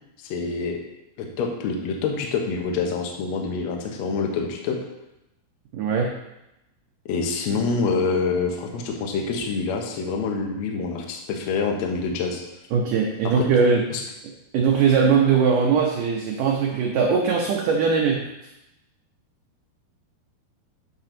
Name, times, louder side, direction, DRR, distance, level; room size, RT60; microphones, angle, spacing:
voice 1, 0.2-0.8 1.2-4.8 7.1-12.4 13.4-13.5 13.9-14.0, left 4 dB, 80° left, 1 dB, 1.5 m, -26 dB
voice 2, 5.7-6.2 12.7-13.8 14.5-18.2, right 5 dB, 80° right, -1 dB, 1.9 m, -20 dB
8.6 x 3.9 x 5.9 m, 0.89 s
omnidirectional pair, 4.8 m